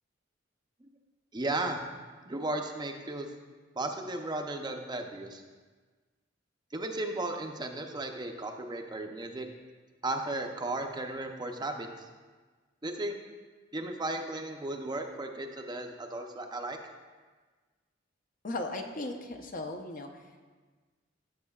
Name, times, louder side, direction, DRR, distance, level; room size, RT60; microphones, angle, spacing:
voice 1, 1.3-1.8 2.3-3.3 3.8-5.4 6.7-9.5 10.0-11.9 12.8-13.1 13.7-16.8, right 2 dB, 20° right, 4 dB, 0.6 m, -35 dB
voice 2, 18.4-20.1, left 2 dB, 45° left, 4 dB, 0.8 m, -36 dB
15.0 x 7.4 x 2.4 m, 1.4 s
head